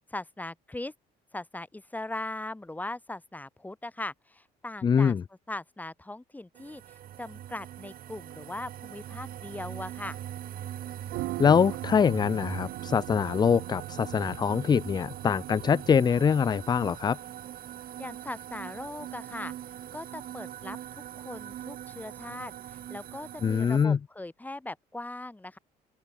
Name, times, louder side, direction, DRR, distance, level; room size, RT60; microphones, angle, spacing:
voice 1, 0.1-0.9 1.3-5.2 5.5-10.2 18.0-19.5 19.9-25.6, left 2 dB, 10° left, 2.4 m, -39 dB
voice 2, 4.8-5.2 11.4-17.2 23.4-24.0, left 6 dB, 25° left, 0.4 m, -24 dB
sound 1, 6.6-23.9, right 11 dB, 60° right, 2.3 m, -42 dB
sound 2, 11.0-16.9, right 19 dB, 80° right, 0.6 m, -40 dB
open air
cardioid pair, 110°, 17 cm